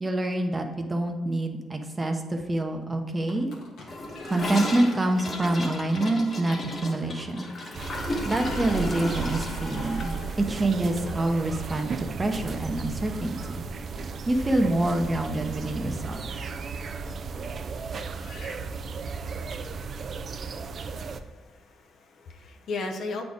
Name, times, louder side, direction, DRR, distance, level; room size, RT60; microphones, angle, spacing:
voice 1, 0.0-3.5 4.2-7.5 8.2-13.6 14.3-16.2, right 1 dB, 20° right, 4 dB, 0.7 m, -26 dB
sound 1, 3.3-5.6 6.2-6.3 7.2-7.3 7.6-7.8 8.2-11.9 15.1-15.2 17.0-17.1 18.1-18.6, left 2 dB, 80° left, 1.4 m, -45 dB
Gurgling / Toilet flush, 3.9-12.1 12.4-12.5 12.8-13.3 13.5-13.6 13.9-14.0 15.0-15.1, left 1 dB, 40° left, 1.2 m, -35 dB
sound 2, 7.7-21.2, right 5 dB, 50° right, 0.4 m, -35 dB
voice 2, 21.0-23.2, left 3 dB, 65° left, 3 dB, 0.8 m, -36 dB
8.2 x 4.0 x 3.5 m, 1.4 s
cardioid pair, 90°, 0 cm